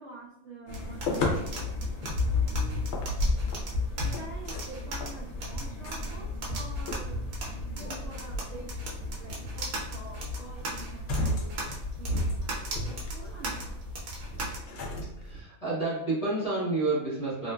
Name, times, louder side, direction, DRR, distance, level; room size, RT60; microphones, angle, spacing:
voice 1, 0.0-2.9 3.9-7.2 7.5-8.7 9.0-11.6 11.9-13.8, right 3 dB, 65° right, -5 dB, 0.8 m, -47 dB
sound 1, 0.7-15.4, left 1 dB, 60° left, 0.8 m, -35 dB
sound 2, 0.7-14.6, left 2 dB, 90° right, 1.2 m, -34 dB
voice 2, 15.2-17.5, right 2 dB, 30° left, -7 dB, 1.0 m, -30 dB
2.8 x 2.4 x 2.2 m, 0.83 s
omnidirectional pair, 1.5 m